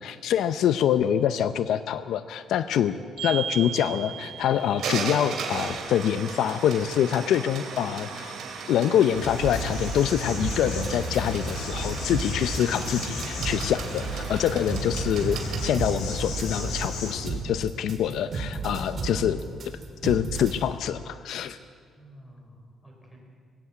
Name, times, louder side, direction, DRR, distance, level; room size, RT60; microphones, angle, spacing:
voice 1, 0.0-2.9 3.2-8.4 8.7-19.4 20.0-21.6, left 10 dB, 65° left, 12 dB, 0.6 m, -25 dB
sound 1, 3.2-15.6, right 6 dB, 60° right, 2.9 m, -36 dB
Insect, 9.1-17.2, left 2 dB, 85° left, 6.0 m, -34 dB
sound 2, 9.4-10.0 10.4-16.9 17.2-20.6, right 4 dB, 35° right, 3.0 m, -33 dB
voice 2, 14.4-14.9 18.5-19.6 22.0-23.2, equal, 10° left, 0 dB, 4.7 m, -43 dB
19.0 x 16.5 x 8.7 m, 2.1 s
cardioid pair, 165°, 0 cm